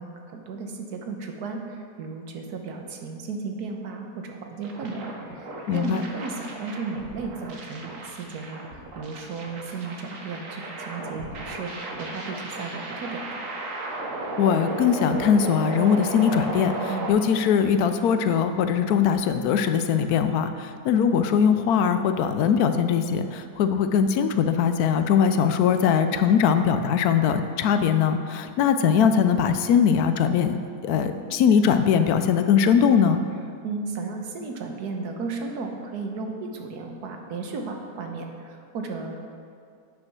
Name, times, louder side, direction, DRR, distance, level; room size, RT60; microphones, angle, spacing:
voice 1, 0.0-13.5 16.9-17.1 33.6-39.3, right 4 dB, 85° right, 3 dB, 1.5 m, -34 dB
sound 1, 4.6-17.1, right 2 dB, 60° right, 1.4 m, -35 dB
voice 2, 5.7-6.0 14.4-30.6 30.8-33.2, left 7 dB, 75° left, 9 dB, 1.1 m, -21 dB
8.7 x 6.2 x 6.0 m, 2.3 s
omnidirectional pair, 1.6 m